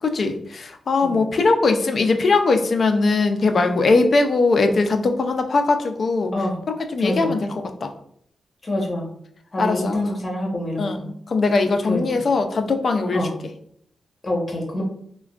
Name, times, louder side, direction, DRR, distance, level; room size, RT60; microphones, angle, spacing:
voice 1, 0.0-6.3 6.7-7.5 7.8-7.9 9.6-10.1 10.8-13.3, left 3 dB, 60° left, 6 dB, 0.4 m, -20 dB
voice 2, 7.0-7.3 8.6-9.1 9.5-11.0 11.9-12.0 13.1-13.3 14.2-14.8, left 1 dB, 35° left, -1 dB, 1.0 m, -26 dB
3.3 x 2.2 x 2.4 m, 0.66 s
cardioid pair, 70°, 0 cm